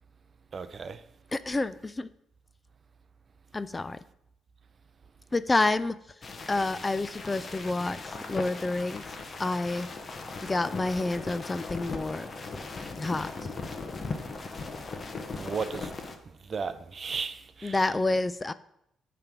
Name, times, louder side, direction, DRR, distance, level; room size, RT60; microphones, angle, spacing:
voice 1, 0.5-1.0 15.3-15.9 16.4-17.8, right 5 dB, 45° right, 0.5 m, -35 dB
voice 2, 1.3-2.1 3.5-4.0 5.3-6.0 6.5-9.1 9.4-9.9 10.4-12.3 13.0-13.3 17.6-18.5, left 2 dB, 20° left, 0.3 m, -28 dB
sound 1, 6.2-16.2, left 3 dB, 35° left, 1.0 m, -38 dB
8.8 x 3.3 x 6.0 m
cardioid pair, 90°, 0 cm